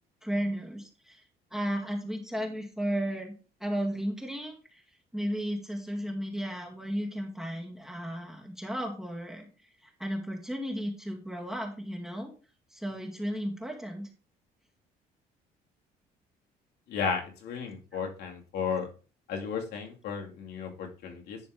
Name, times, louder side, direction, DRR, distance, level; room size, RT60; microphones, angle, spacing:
voice 1, 0.2-1.2 1.5-3.4 3.6-4.8 5.1-9.5 9.8-12.3 12.7-14.1 17.9-18.0, equal, ahead, 0 dB, 2.1 m, -34 dB
voice 2, 16.9-18.9 19.3-21.4, left 6 dB, 70° left, 1 dB, 2.6 m, -34 dB
11.0 x 3.9 x 5.1 m, 0.35 s
cardioid pair, 110°, 17 cm